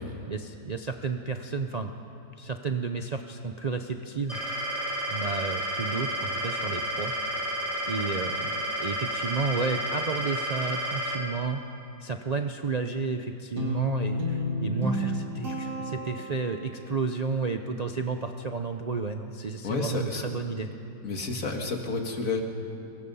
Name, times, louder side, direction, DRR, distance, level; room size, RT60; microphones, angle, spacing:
voice 1, 0.3-1.9 2.4-4.7 5.1-7.5 7.9-11.6 12.0-20.7, right 4 dB, 90° right, 5 dB, 0.3 m, -32 dB
sound 1, 4.3-11.2, equal, 35° left, 3.5 m, -31 dB
Guitar, 13.6-16.8, left 1 dB, 70° right, 2.9 m, -31 dB
voice 2, 19.6-20.2 21.0-22.4, left 3 dB, 55° left, 3 dB, 2.2 m, -30 dB
24.0 x 20.0 x 5.5 m, 2.7 s
omnidirectional pair, 1.8 m